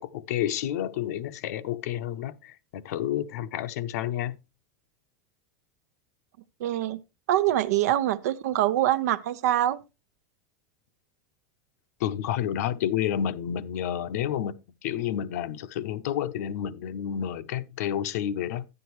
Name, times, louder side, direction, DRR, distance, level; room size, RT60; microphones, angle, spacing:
voice 1, 0.0-4.4 12.0-14.5 14.8-18.7, left 10 dB, 75° left, 0.8 m, -30 dB
voice 2, 6.6-7.0 7.3-9.8, right 13 dB, 80° right, 0.8 m, -24 dB
10.0 x 9.8 x 3.1 m
supercardioid pair, 145°, 9 cm